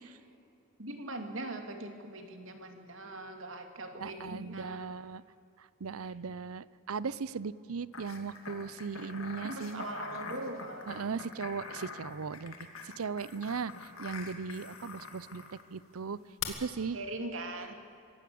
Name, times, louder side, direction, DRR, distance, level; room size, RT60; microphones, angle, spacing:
voice 1, 0.8-4.9 6.0-6.1 9.0-9.1 9.4-11.2 16.9-17.7, right 2 dB, 65° right, 6 dB, 2.4 m, -41 dB
voice 2, 4.0-5.2 5.8-9.8 10.9-12.5 12.8-13.7 14.0-15.4 15.7-16.2 16.5-17.0, right 5 dB, 85° right, 19 dB, 0.6 m, -37 dB
sound 1, 7.9-15.6 16.4-16.5, left 5 dB, 75° left, 2.5 m, -44 dB
24.5 x 16.5 x 8.6 m, 2.7 s
head